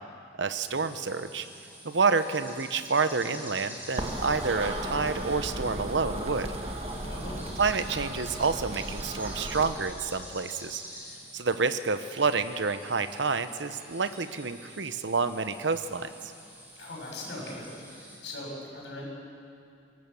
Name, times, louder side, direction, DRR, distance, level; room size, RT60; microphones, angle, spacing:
voice 1, 0.4-1.5 1.8-6.5 7.6-10.8 11.3-16.3, right 4 dB, 80° right, 10 dB, 1.0 m, -28 dB
sound 1, 0.5-18.2, equal, 10° right, 5.2 m, -47 dB
sound 2, 4.0-9.7, right 1 dB, 35° right, 1.7 m, -35 dB
voice 2, 7.0-7.4 11.0-11.1 16.8-17.7 18.2-19.0, left 1 dB, 75° left, -2 dB, 7.2 m, -39 dB
24.5 x 17.5 x 7.1 m, 2.5 s
head